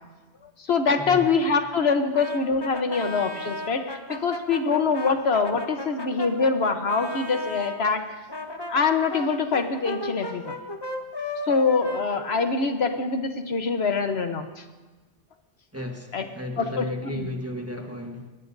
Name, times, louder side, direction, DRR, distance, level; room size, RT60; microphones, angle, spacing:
voice 1, 0.4-8.2 8.7-10.5 11.5-14.6 16.1-16.2 16.6-17.3, left 4 dB, 70° left, 6 dB, 1.2 m, -24 dB
Brass instrument, 2.1-7.8 8.3-13.1, left 2 dB, 25° left, 1.1 m, -35 dB
voice 2, 15.7-18.3, equal, 15° right, 1 dB, 1.3 m, -34 dB
22.0 x 18.5 x 2.7 m, 1.2 s
omnidirectional pair, 1.1 m